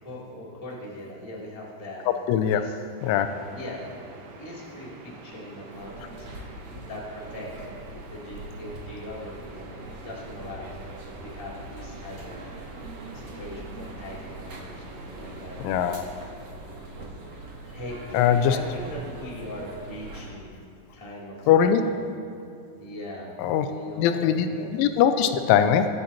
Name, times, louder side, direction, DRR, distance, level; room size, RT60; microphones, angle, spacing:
voice 1, 0.0-2.1 2.4-2.8 3.5-3.9 4.4-7.7 8.1-10.7 11.0-12.4 13.1-15.6 17.7-21.4 21.7-22.1 22.8-24.7 25.0-25.3, left 1 dB, 10° left, -6 dB, 1.7 m, -40 dB
voice 2, 2.3-2.6 3.0-3.3 15.6-16.0 18.1-18.6 21.5-21.8 23.4-23.7 24.0-24.5 24.7-25.9, left 9 dB, 90° left, 8 dB, 3.1 m, -21 dB
sound 1, 3.0-16.2, right 3 dB, 70° right, 3.2 m, -46 dB
sound 2, 5.7-20.3, right 1 dB, 45° right, 2.2 m, -42 dB
22.0 x 12.5 x 2.9 m, 2.5 s
omnidirectional pair, 5.5 m